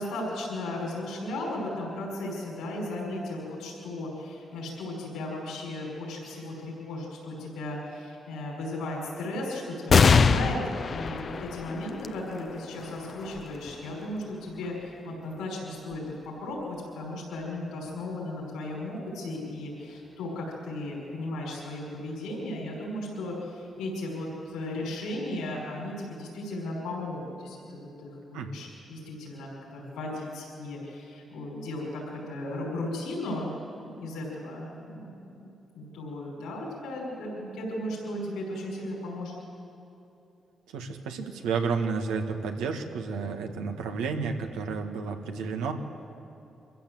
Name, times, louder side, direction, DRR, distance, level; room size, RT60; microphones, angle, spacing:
voice 1, 0.0-10.6 10.9-33.5 33.9-39.4, left 1 dB, 80° left, -4 dB, 5.5 m, -36 dB
sound 1, 9.9-16.8 17.4-17.5 18.6-19.2, left 5 dB, 55° left, 0.8 m, -27 dB
voice 2, 40.7-45.7, right 5 dB, 90° right, 3 dB, 1.7 m, -31 dB
24.0 x 15.0 x 7.8 m, 2.9 s
supercardioid pair, 50°, 0 cm